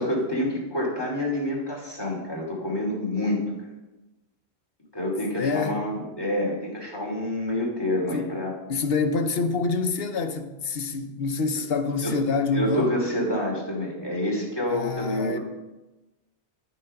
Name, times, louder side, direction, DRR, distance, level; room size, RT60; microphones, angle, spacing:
voice 1, 0.0-3.7 4.9-8.5 12.0-12.1 12.5-15.4, left 1 dB, 20° left, 2.7 m, -27 dB
voice 2, 5.4-5.8 8.1-8.3 8.7-12.9 14.7-15.4, left 4 dB, 65° left, 1.0 m, -26 dB
9.6 x 8.4 x 5.6 m
omnidirectional pair, 1.1 m